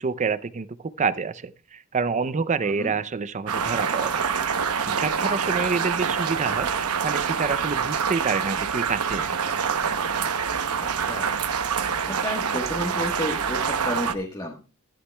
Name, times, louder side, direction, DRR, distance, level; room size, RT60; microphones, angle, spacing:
voice 1, 0.0-4.2 4.8-9.5, right 5 dB, 35° right, 16 dB, 0.5 m, -28 dB
sound 1, 3.5-14.1, right 6 dB, 85° right, 0.9 m, -26 dB
voice 2, 10.8-11.3 12.0-14.6, left 1 dB, 20° left, -1 dB, 1.3 m, -31 dB
14.0 x 11.5 x 2.3 m, 0.35 s
head